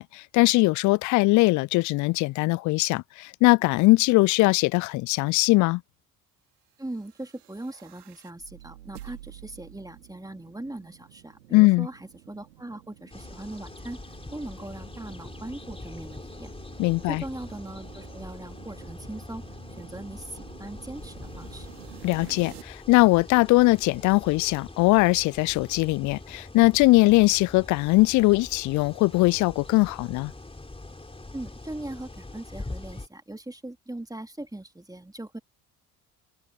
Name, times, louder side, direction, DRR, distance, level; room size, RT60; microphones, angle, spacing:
voice 1, 0.0-5.8 11.5-11.9 16.8-17.2 22.0-30.3, left 22 dB, 45° left, 0.4 m, -21 dB
voice 2, 6.8-14.0 14.3-16.5 17.1-19.4 19.8-21.7 31.3-35.4, right 1 dB, 10° right, 2.9 m, -40 dB
sound 1, 6.9-22.6, right 13 dB, 80° right, 2.9 m, -50 dB
sound 2, 13.1-33.1, left 2 dB, 10° left, 3.5 m, -43 dB
figure-of-eight pair, 55°, 45 cm